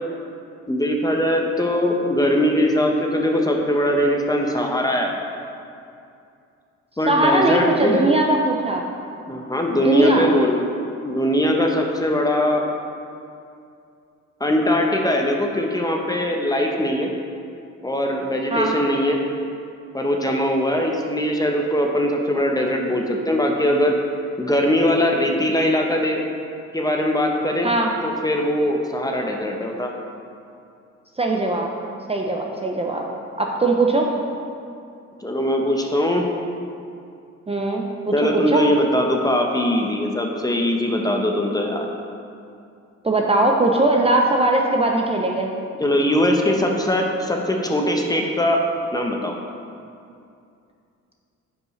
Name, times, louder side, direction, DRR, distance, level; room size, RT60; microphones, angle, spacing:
voice 1, 0.7-5.1 7.0-8.0 9.3-10.6 11.0-12.7 14.4-17.1 17.8-19.2 19.9-24.0 24.4-26.2 26.7-27.7 28.0-29.9 35.2-36.3 38.1-41.9 45.8-48.6 48.9-49.4, left 1 dB, 15° left, 1 dB, 0.8 m, -21 dB
voice 2, 7.1-8.8 9.8-10.3 18.5-18.7 27.6-27.9 31.2-31.7 32.1-33.0 33.4-34.1 37.5-38.6 43.0-45.5, right 2 dB, 20° right, 1 dB, 0.6 m, -20 dB
9.5 x 5.4 x 3.2 m, 2.5 s
cardioid pair, 90°, 30 cm